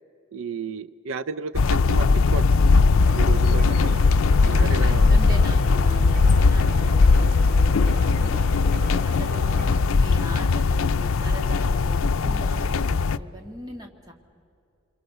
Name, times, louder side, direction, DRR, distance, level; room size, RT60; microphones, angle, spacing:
voice 1, 0.3-2.5 3.1-4.0 4.4-5.2, right 5 dB, 85° right, 15 dB, 0.5 m, -33 dB
sound 1, 1.5-13.2, left 4 dB, 85° left, 0.5 m, -19 dB
voice 2, 2.7-3.5 4.0-8.4 9.0-9.7 10.0-14.1, equal, 20° right, 2 dB, 2.0 m, -40 dB
sound 2, 2.9-9.8, right 1 dB, 50° right, 4.3 m, -39 dB
28.0 x 23.0 x 6.7 m, 2.6 s
head